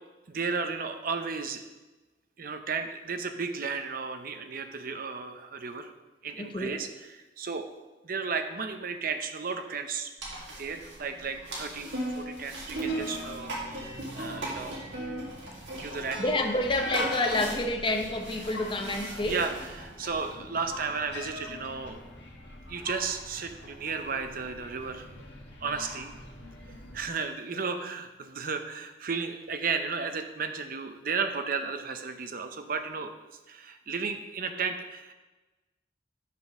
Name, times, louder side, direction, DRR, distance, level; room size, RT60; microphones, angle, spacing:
voice 1, 0.3-1.6 2.4-5.9 6.2-7.7 8.0-10.1 10.6-14.9 15.8-16.2 19.2-22.0 22.7-25.1 25.6-26.1 26.9-33.1 33.5-35.1, right 5 dB, 50° right, 7 dB, 0.6 m, -34 dB
voice 2, 6.4-6.8 16.2-19.4, left 2 dB, 30° left, 4 dB, 0.8 m, -29 dB
sound 1, 10.2-20.3, right 2 dB, 80° right, 2.0 m, -38 dB
sound 2, 12.7-27.1, left 2 dB, 75° left, 1.4 m, -43 dB
6.7 x 5.3 x 5.9 m, 1.1 s
head